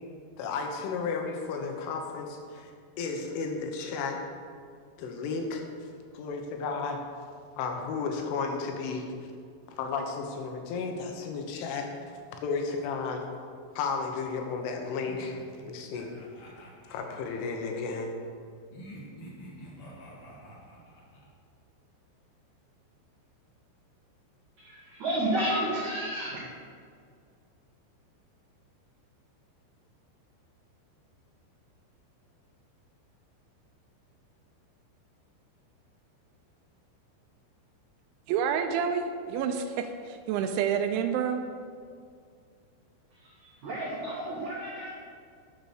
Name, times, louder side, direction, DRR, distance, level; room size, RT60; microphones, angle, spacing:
voice 1, 0.4-2.7 3.0-4.2 5.0-5.6 6.2-7.0 7.6-9.1 9.7-11.9 12.4-13.2 13.8-16.1 16.6-18.1, left 4 dB, 85° left, 3 dB, 3.6 m, -33 dB
sound 1, 15.1-17.8 18.7-21.3, equal, 60° left, 1.5 m, -48 dB
voice 2, 24.6-26.4 43.1-44.9, right 1 dB, 65° right, -5 dB, 1.9 m, -31 dB
voice 3, 38.3-41.4, right 7 dB, 85° right, 7 dB, 2.9 m, -28 dB
9.7 x 6.9 x 6.3 m, 2.2 s
omnidirectional pair, 5.5 m